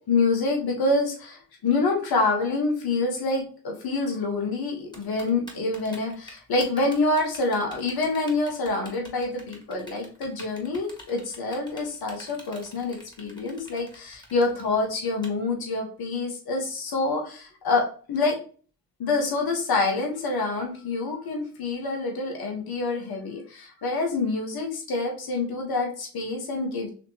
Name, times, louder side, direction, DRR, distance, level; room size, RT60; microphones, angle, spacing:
voice 1, 0.1-18.4 19.0-26.9, left 3 dB, 65° left, 1 dB, 1.4 m, -27 dB
Typing, 4.9-15.3, equal, 10° left, 1.8 m, -46 dB
4.1 x 3.0 x 2.9 m, 0.40 s
hypercardioid pair, 40°, 40 cm